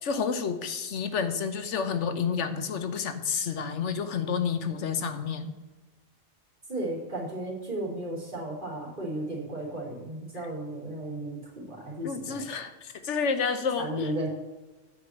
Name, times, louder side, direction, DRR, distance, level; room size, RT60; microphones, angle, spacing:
voice 1, 0.0-5.5 12.0-14.1, left 6 dB, 80° left, 9 dB, 1.1 m, -30 dB
voice 2, 6.7-12.5 13.8-14.3, right 1 dB, 45° right, -3 dB, 3.3 m, -34 dB
9.2 x 4.8 x 7.4 m, 1.2 s
omnidirectional pair, 1.2 m